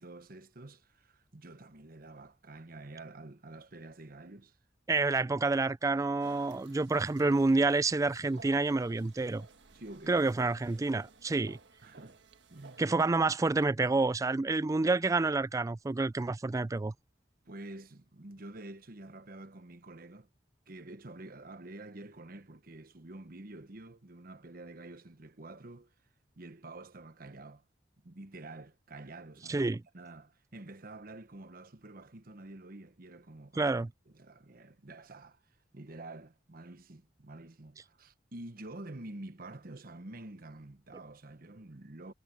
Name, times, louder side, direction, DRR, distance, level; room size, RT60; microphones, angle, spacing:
voice 1, 0.0-4.6 9.7-10.2 11.8-12.2 12.5-12.8 17.4-20.3 20.7-25.9 26.4-27.6 28.0-29.7 29.9-33.7 34.1-42.1, right 2 dB, 55° right, 1.1 m, -48 dB
voice 2, 4.9-9.5 10.1-11.6 12.8-16.9 29.5-29.8 33.6-33.9, right 3 dB, 20° right, 0.3 m, -28 dB
sound 1, 6.2-12.9, right 4 dB, 85° right, 1.5 m, -56 dB
head